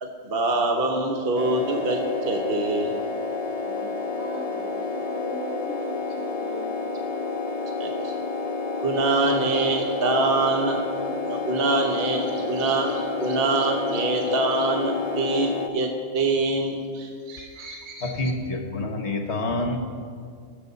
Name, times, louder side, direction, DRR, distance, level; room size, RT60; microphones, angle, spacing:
voice 1, 0.0-2.9 7.8-7.9 8.8-10.8 11.3-18.0, right 2 dB, 45° right, 2 dB, 1.0 m, -25 dB
sound 1, 1.4-15.7, left 4 dB, 80° left, 0.3 m, -29 dB
voice 2, 3.6-6.7, right 2 dB, 75° right, -3 dB, 2.8 m, -39 dB
voice 3, 17.4-19.8, left 2 dB, 50° left, 3 dB, 1.4 m, -28 dB
19.5 x 7.9 x 4.1 m, 2.2 s
omnidirectional pair, 1.6 m